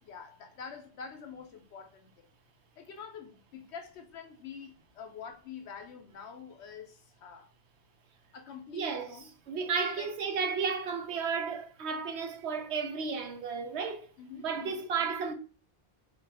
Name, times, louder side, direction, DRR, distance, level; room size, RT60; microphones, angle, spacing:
voice 1, 0.0-2.3 2.8-7.5 8.3-9.3 10.0-10.1 14.2-14.8, left 6 dB, 80° left, 0.9 m, -46 dB
voice 2, 8.7-9.2 9.5-14.1 14.4-15.3, right 5 dB, 80° right, 1.0 m, -33 dB
4.1 x 2.3 x 3.3 m
omnidirectional pair, 1.1 m